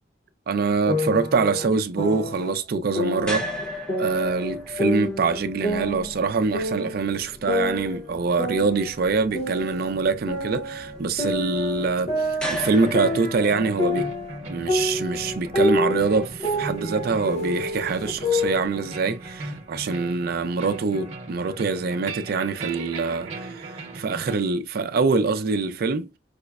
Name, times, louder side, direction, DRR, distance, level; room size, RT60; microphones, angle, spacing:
voice 1, 0.5-3.5 4.0-14.1 14.5-26.1, right 4 dB, 55° right, 0.4 m, -24 dB
sound 1, 0.9-2.5 3.0-4.5 4.8-7.0 7.5-9.9 10.3-14.4 14.7-18.7, left 1 dB, 40° left, 0.7 m, -28 dB
sound 2, 3.2-19.4, left 1 dB, 5° left, 0.7 m, -39 dB
sound 3, 12.6-24.4, right 3 dB, 40° right, 0.8 m, -38 dB
4.9 x 2.1 x 2.3 m
head